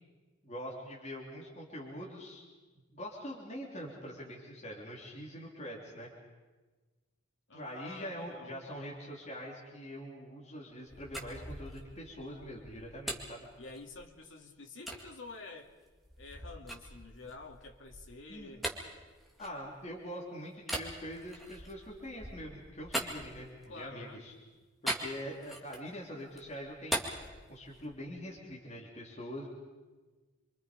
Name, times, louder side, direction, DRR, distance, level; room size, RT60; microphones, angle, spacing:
voice 1, 0.4-2.4 2.9-6.1 7.5-13.5 18.3-18.5 19.4-24.3 24.8-27.0 27.5-29.5, equal, 35° left, -3 dB, 3.4 m, -44 dB
voice 2, 7.5-8.6 13.6-15.7 16.2-18.7 23.7-24.2, left 3 dB, 70° left, 2 dB, 2.2 m, -49 dB
sound 1, 10.9-14.2 14.9-15.0 15.6-20.0 20.6-23.8 24.9-25.9 26.3-28.1, right 1 dB, ahead, 2.2 m, -41 dB
27.5 x 24.5 x 5.2 m, 1.3 s
head